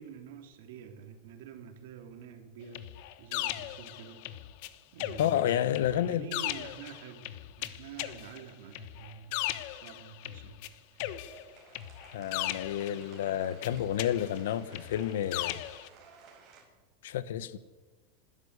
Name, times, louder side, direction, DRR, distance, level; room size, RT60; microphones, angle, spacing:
voice 1, 0.0-4.3 4.9-10.6 10.9-11.1, right 7 dB, 65° right, 3.1 m, -47 dB
sound 1, 2.7-4.7 5.0-10.7 11.0-13.2 13.6-15.9, left 14 dB, 50° left, 1.1 m, -38 dB
voice 2, 5.2-6.3 12.1-15.6 17.0-17.6, left 11 dB, 80° left, 1.2 m, -30 dB
sound 2, 10.9-16.6, right 6 dB, 30° right, 5.4 m, -56 dB
26.0 x 13.0 x 8.2 m
supercardioid pair, 170°, 0 cm